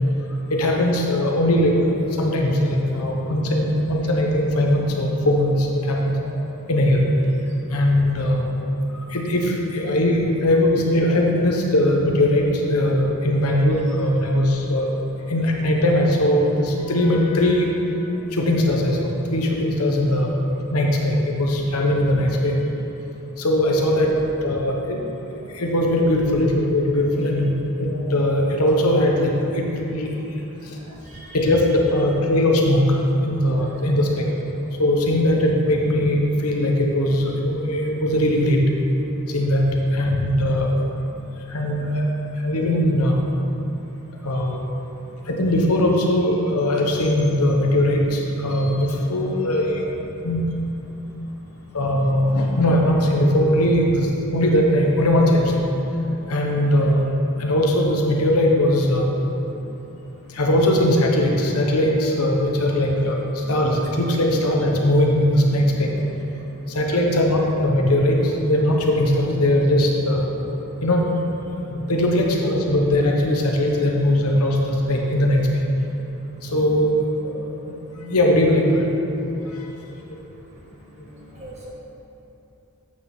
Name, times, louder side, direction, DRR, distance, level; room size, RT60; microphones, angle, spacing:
voice 1, 0.5-1.8 2.2-6.3 6.7-7.0 7.7-8.4 9.1-14.9 15.3-17.7 18.3-20.3 20.7-22.5 23.4-24.1 24.4-25.1 25.5-27.5 27.8-30.1 31.3-33.0 33.2-34.3 34.8-38.6 39.3-39.6 39.9-40.7 41.5-42.0 42.4-43.2 44.2-44.6 45.3-49.9 50.2-50.4 51.7-55.5 56.3-57.0 57.4-59.1 60.3-65.9 66.7-70.3 70.8-71.2 71.7-75.4 76.4-76.9 77.2-77.5 77.9-78.9 79.2-79.3 80.1-80.2, left 1 dB, 85° left, 0 dB, 1.0 m, -20 dB
voice 2, 31.1-31.4 81.4-81.7, right 1 dB, 30° right, -5 dB, 1.3 m, -40 dB
8.5 x 6.3 x 3.6 m, 3.0 s
head